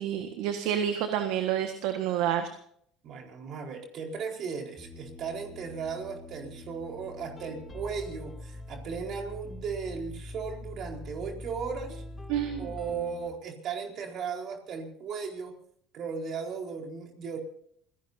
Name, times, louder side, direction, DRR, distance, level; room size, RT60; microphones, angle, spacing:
voice 1, 0.0-2.5 12.3-12.7, right 10 dB, 75° right, 6 dB, 1.5 m, -29 dB
voice 2, 3.0-12.0 12.6-15.5 15.9-17.4, right 5 dB, 55° right, 2 dB, 4.4 m, -36 dB
sound 1, 4.8-13.3, left 1 dB, 20° left, 5.4 m, -43 dB
27.0 x 17.5 x 2.7 m, 0.64 s
supercardioid pair, 90°, 0 cm